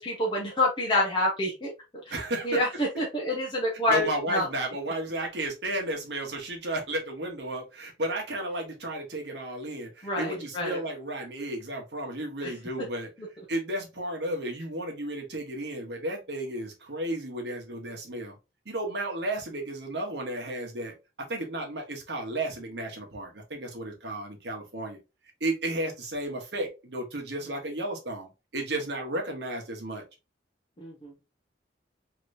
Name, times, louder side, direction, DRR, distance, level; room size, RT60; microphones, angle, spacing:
voice 1, 0.0-1.7 2.1-2.2 2.4-4.5 10.0-10.8 12.4-12.5 30.8-31.1, left 1 dB, 25° left, 0.8 m, -27 dB
voice 2, 2.1-2.6 3.9-13.1 13.5-18.3 18.6-25.0 25.4-30.0, right 1 dB, 65° right, 1.1 m, -33 dB
3.2 x 2.9 x 2.6 m
head